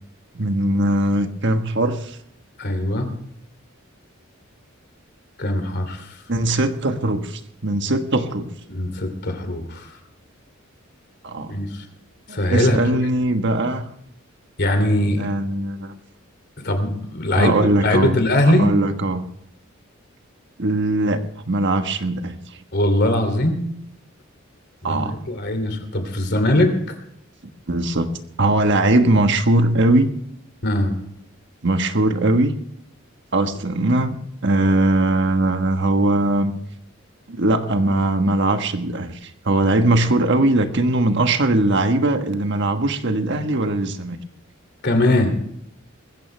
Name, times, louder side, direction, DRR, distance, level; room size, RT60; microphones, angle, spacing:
voice 1, 0.3-2.2 6.3-8.5 11.2-11.5 12.3-13.9 15.2-15.9 17.3-18.1 18.5-19.2 20.6-22.4 24.8-25.2 27.7-28.1 28.4-30.1 31.6-32.5 33.3-34.1 34.4-36.5 37.3-44.2, right 2 dB, 60° right, 7 dB, 1.4 m, -20 dB
voice 2, 2.6-3.1 5.4-6.2 8.7-9.9 11.5-11.8 12.3-12.8 14.6-15.3 16.6-18.7 22.7-23.6 24.8-26.9 30.6-30.9 44.8-45.3, left 1 dB, 55° left, 7 dB, 2.8 m, -21 dB
20.5 x 15.0 x 3.3 m, 0.72 s
head